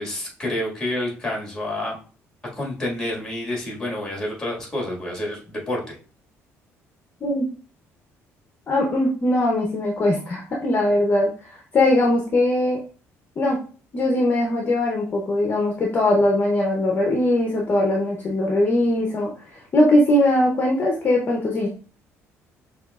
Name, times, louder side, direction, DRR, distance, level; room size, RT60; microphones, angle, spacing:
voice 1, 0.0-2.0 2.6-6.0, left 1 dB, 10° left, -2 dB, 1.8 m, -28 dB
voice 2, 8.7-12.8 13.4-13.6 13.9-19.3 19.7-21.7, left 1 dB, 35° left, 0 dB, 0.8 m, -20 dB
6.1 x 2.8 x 2.4 m, 0.40 s
cardioid pair, 135°, 6 cm